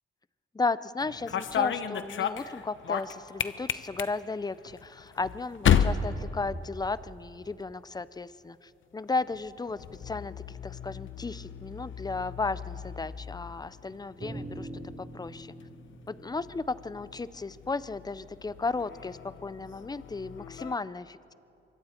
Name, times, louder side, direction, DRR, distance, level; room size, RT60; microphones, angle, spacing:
voice 1, 0.5-10.3 10.6-14.7 15.0-15.5 16.1-21.3, left 3 dB, 20° left, 16 dB, 0.5 m, -34 dB
sound 1, 1.0-7.2 7.5-8.0 9.1-20.7, left 8 dB, 70° left, 0.8 m, -34 dB
sound 2, 14.2-18.7, right 1 dB, 50° right, 3.9 m, -45 dB
25.5 x 23.5 x 4.4 m, 2.7 s
cardioid pair, 90°, 21 cm